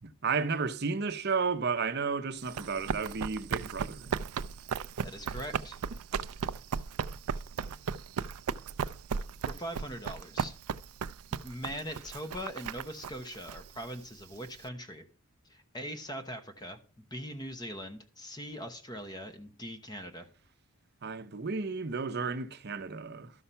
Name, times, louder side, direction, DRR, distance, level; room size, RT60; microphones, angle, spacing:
voice 1, 0.0-4.2 21.0-23.3, right 5 dB, 45° right, 0.7 m, -33 dB
Run, 2.4-14.6, right 6 dB, 85° right, 0.4 m, -36 dB
voice 2, 5.0-5.8 9.5-10.5 11.3-15.0 15.5-16.8 17.1-20.3, equal, 20° left, 0.9 m, -41 dB
12.5 x 5.7 x 5.6 m
head